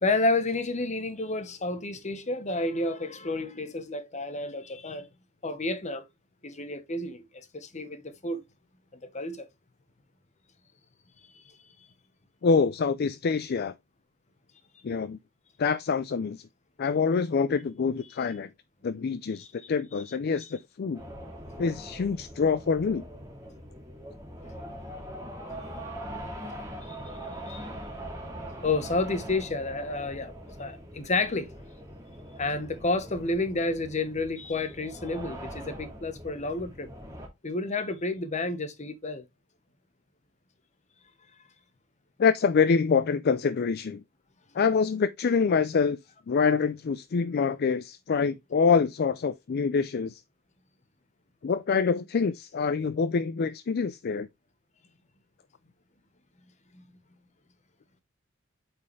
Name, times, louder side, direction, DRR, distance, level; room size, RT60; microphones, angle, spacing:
voice 1, 0.0-5.1 5.4-6.0 6.4-8.4 9.0-9.5 19.4-19.5 26.8-27.2 27.5-27.7 28.6-31.5 32.4-36.9 37.4-39.2 56.7-56.8, left 2 dB, 35° left, 1.1 m, -30 dB
voice 2, 12.4-13.7 14.8-15.2 15.6-16.4 16.8-18.5 18.8-21.0 21.6-23.0 42.2-44.0 44.5-46.0 46.3-50.2 51.4-54.3, left 5 dB, 50° left, 0.4 m, -26 dB
sound 1, 20.9-37.3, equal, 15° right, 2.3 m, -42 dB
8.4 x 4.6 x 3.2 m
head